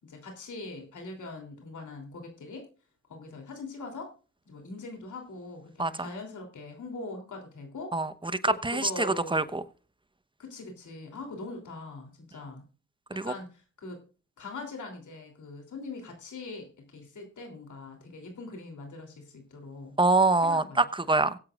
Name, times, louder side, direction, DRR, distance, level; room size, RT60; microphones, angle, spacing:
voice 1, 0.0-2.7 3.1-4.1 4.5-7.9 8.4-9.4 10.4-12.6 13.1-14.0 14.4-20.0 20.4-20.8, left 3 dB, 75° left, 3.3 m, -42 dB
voice 2, 8.4-9.6 13.2-13.3 20.0-21.4, right 2 dB, 15° right, 1.0 m, -25 dB
23.0 x 8.1 x 2.5 m
cardioid pair, 55°, 30 cm